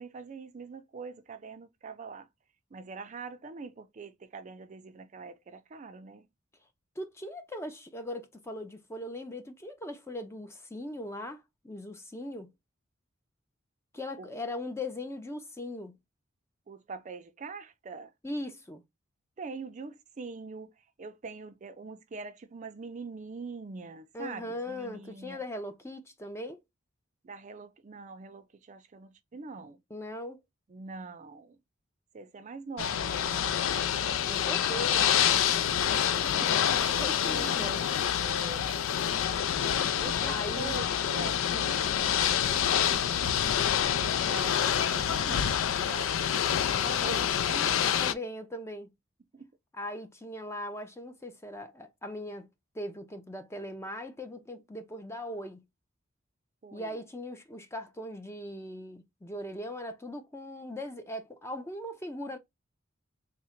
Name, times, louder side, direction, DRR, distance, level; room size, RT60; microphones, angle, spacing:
voice 1, 0.0-2.3 2.7-6.3 14.2-14.3 16.7-18.1 19.4-20.7 21.0-25.4 27.2-29.8 30.7-31.6 32.1-36.5 37.2-37.8 38.2-38.7 40.0-43.2 43.8-47.7 49.3-49.5 56.6-57.0, right 4 dB, 40° right, 0.4 m, -44 dB
voice 2, 7.0-12.5 13.9-16.0 18.2-18.8 24.1-26.6 29.9-30.4 34.3-35.4 36.3-36.7 37.0-37.8 40.2-40.9 41.3-41.7 46.8-47.3 47.8-48.9 49.7-52.5 52.7-55.6 56.7-62.4, left 1 dB, 15° left, 0.5 m, -39 dB
Ocean / Boat Water vehicle, 32.8-48.1, left 9 dB, 80° left, 0.4 m, -27 dB
3.6 x 2.1 x 4.3 m
head